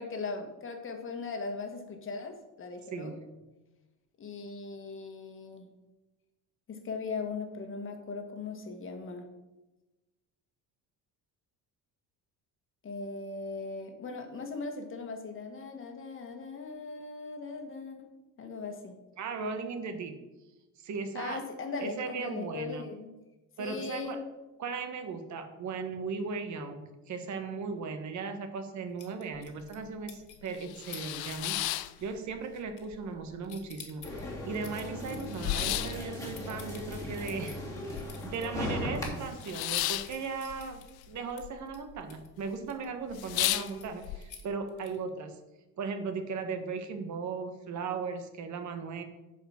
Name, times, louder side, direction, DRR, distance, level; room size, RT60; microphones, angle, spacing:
voice 1, 0.0-3.2 4.2-5.7 6.7-9.3 12.8-18.1 18.4-19.0 21.1-23.1 23.6-24.2, left 4 dB, 30° left, 4 dB, 1.7 m, -39 dB
voice 2, 2.9-3.3 19.2-20.2 20.8-21.4 21.8-22.9 23.6-24.2 24.6-45.4 45.8-49.0, right 5 dB, 45° right, 7 dB, 1.4 m, -37 dB
sound 1, 29.0-29.8 30.1-30.5 30.9-31.3 31.6-31.9 32.2-33.2 33.4-38.5 38.9-39.0 39.3-42.9 43.4-45.1, left 7 dB, 50° left, 2.1 m, -51 dB
sound 2, 29.4-29.5 29.9-30.0 30.4-32.6 32.9-33.7 34.0-34.1 34.3-38.4 38.7-41.5 41.8-42.3 42.7-42.8 43.1-44.2, left 15 dB, 70° left, 0.6 m, -34 dB
sound 3, 34.0-39.0, left 1 dB, 10° left, 2.8 m, -38 dB
9.9 x 5.1 x 7.4 m, 1.1 s
cardioid pair, 140°, 38 cm